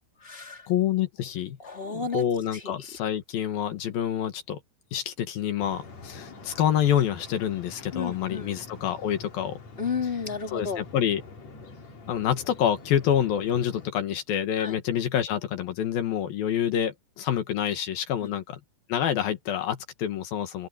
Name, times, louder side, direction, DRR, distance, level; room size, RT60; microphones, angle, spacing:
voice 1, 0.0-0.7 1.6-2.2 2.5-2.6 7.9-8.5 9.8-10.8 14.6-14.7 18.2-18.3, left 5 dB, 15° left, 2.3 m, -32 dB
voice 2, 0.7-1.6 1.8-4.6 4.9-9.6 10.5-11.2 12.1-18.6 18.9-20.7, left 10 dB, 60° left, 2.7 m, -27 dB
sound 1, 5.6-13.9, left 3 dB, 40° left, 4.1 m, -46 dB
open air
omnidirectional pair, 5.5 m